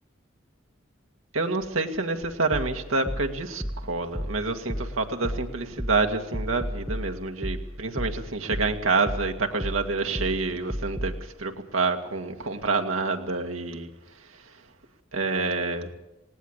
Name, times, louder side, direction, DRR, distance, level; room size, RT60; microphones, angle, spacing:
voice 1, 1.3-13.9 15.1-15.9, right 3 dB, 90° right, 4 dB, 2.1 m, -28 dB
sound 1, 2.5-11.2, equal, 5° right, 1.1 m, -34 dB
19.0 x 18.0 x 8.2 m, 0.94 s
head